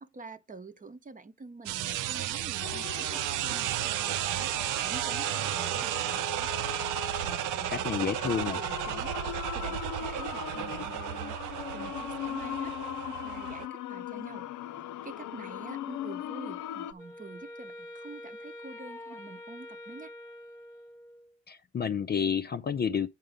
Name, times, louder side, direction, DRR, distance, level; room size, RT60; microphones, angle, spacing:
voice 1, 0.0-4.5 4.8-6.5 6.9-11.4 11.7-12.7 13.1-14.5 15.0-20.1, right 3 dB, 25° right, 0.9 m, -47 dB
sound 1, 1.7-13.7, right 13 dB, 90° right, 0.5 m, -33 dB
sound 2, 2.6-16.9, left 12 dB, 80° left, 0.7 m, -39 dB
voice 2, 7.7-8.6 21.5-23.1, left 7 dB, 35° left, 0.5 m, -30 dB
Wind instrument woodwind instrument, 17.0-21.4, left 1 dB, 5° left, 1.3 m, -46 dB
8.9 x 5.3 x 5.1 m
cardioid pair, 90°, 30 cm